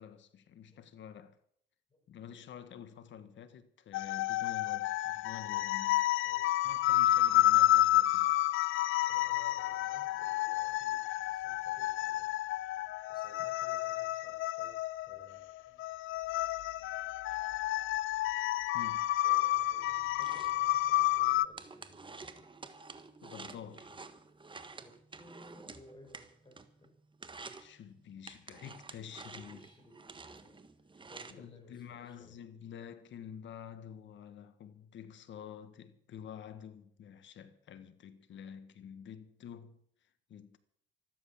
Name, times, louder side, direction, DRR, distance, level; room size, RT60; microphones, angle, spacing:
voice 1, 0.0-1.4 2.1-6.0 6.6-8.3 13.4-13.5 18.7-19.2 23.2-23.9 27.6-29.6 31.3-40.6, left 8 dB, 70° left, 1.6 m, -49 dB
sound 1, 3.9-21.5, left 14 dB, 90° left, 0.5 m, -30 dB
voice 2, 8.8-12.3 13.1-15.9 19.2-22.5 23.9-24.0 24.7-26.9 29.2-32.4, left 1 dB, 25° left, 5.8 m, -59 dB
sound 2, 19.8-26.9 27.1-27.7 28.3-31.3, right 4 dB, 25° right, 1.5 m, -50 dB
13.5 x 12.5 x 7.4 m
cardioid pair, 90°, 20 cm